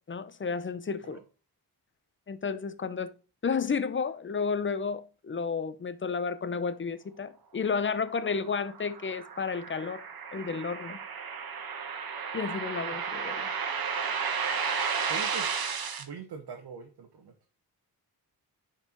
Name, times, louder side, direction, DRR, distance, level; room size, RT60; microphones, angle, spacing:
voice 1, 0.1-1.2 2.3-3.1 3.4-10.0 10.3-11.0 12.3-13.6, left 5 dB, 30° left, 0.7 m, -32 dB
sound 1, 8.2-16.0, right 6 dB, 65° right, 1.4 m, -33 dB
voice 2, 15.1-15.5 16.0-17.3, right 5 dB, 85° right, 1.4 m, -42 dB
9.7 x 4.7 x 4.5 m
wide cardioid pair, 105°, 38 cm